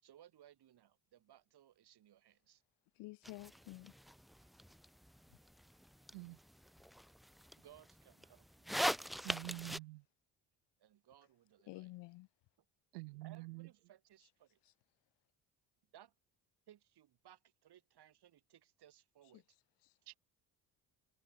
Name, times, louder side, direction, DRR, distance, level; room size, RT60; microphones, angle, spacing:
voice 1, 0.0-2.6 7.6-8.8 9.7-9.8 10.8-11.9 13.2-14.6 15.9-16.1 16.7-19.4, right 11 dB, 55° right, 5.8 m, -63 dB
voice 2, 2.9-4.0 5.3-5.4 11.7-12.3 14.6-14.7 19.3-19.4 19.8-20.0, left 20 dB, 65° left, 1.2 m, -51 dB
sound 1, 3.2-9.8, equal, ahead, 0.4 m, -43 dB
voice 3, 9.2-10.0 12.9-13.7 20.1-20.2, right 26 dB, 80° right, 0.8 m, -47 dB
hypercardioid pair, 55°, 46 cm